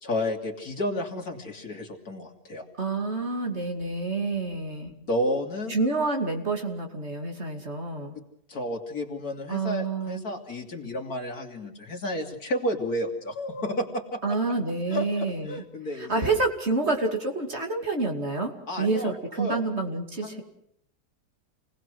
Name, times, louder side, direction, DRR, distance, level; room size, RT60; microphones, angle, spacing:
voice 1, 0.0-2.6 5.1-5.8 8.1-8.2 8.5-14.2 14.9-15.0 15.5-16.4 18.7-19.6 20.2-20.4, left 1 dB, 60° left, 3 dB, 3.3 m, -31 dB
voice 2, 2.8-4.9 5.7-8.1 9.5-10.2 14.2-15.6 15.9-20.4, right 3 dB, 40° right, 3 dB, 2.9 m, -28 dB
28.5 x 19.5 x 6.3 m, 0.73 s
omnidirectional pair, 1.8 m